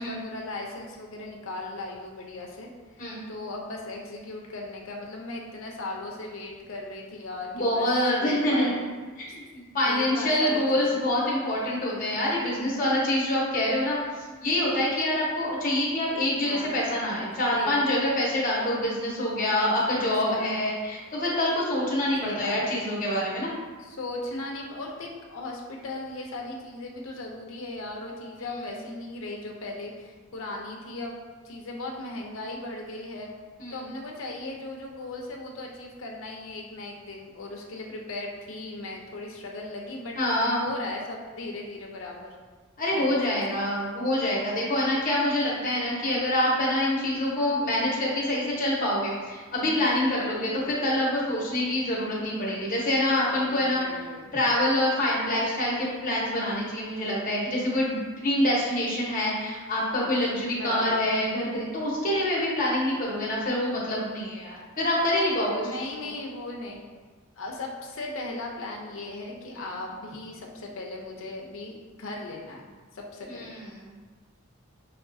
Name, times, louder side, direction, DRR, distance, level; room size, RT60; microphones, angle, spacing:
voice 1, 0.0-2.7 3.3-7.9 8.1-8.8 9.9-11.0 16.4-16.8 17.5-17.8 20.0-20.6 22.2-22.8 23.8-33.3 33.7-40.2 40.6-42.3 42.9-43.6 50.1-50.5 53.3-54.3 60.6-61.0 65.6-66.8 67.4-73.5, left 2 dB, 70° left, 0 dB, 0.6 m, -37 dB
voice 2, 7.5-8.8 9.2-23.5 28.4-28.5 33.6-33.8 40.2-40.7 42.8-53.8 54.3-65.7 66.0-66.1 69.6-69.7 73.3-74.0, left 1 dB, 40° left, -5 dB, 1.0 m, -26 dB
5.7 x 2.3 x 2.6 m, 1.4 s
head